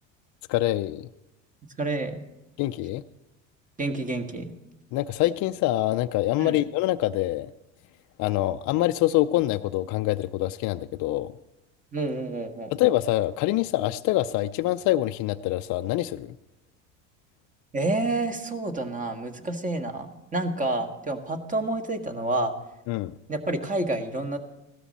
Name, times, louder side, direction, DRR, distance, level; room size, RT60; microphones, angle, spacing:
voice 1, 0.5-1.1 2.6-3.0 4.9-7.5 8.2-11.3 12.8-16.4 22.9-23.2, left 15 dB, 55° left, 7 dB, 0.5 m, -25 dB
voice 2, 1.8-2.2 3.8-4.5 6.4-6.6 11.9-12.7 17.7-22.5 23.3-24.4, right 2 dB, 20° right, 6 dB, 1.6 m, -29 dB
16.5 x 12.5 x 4.2 m, 0.92 s
supercardioid pair, 100°, 37 cm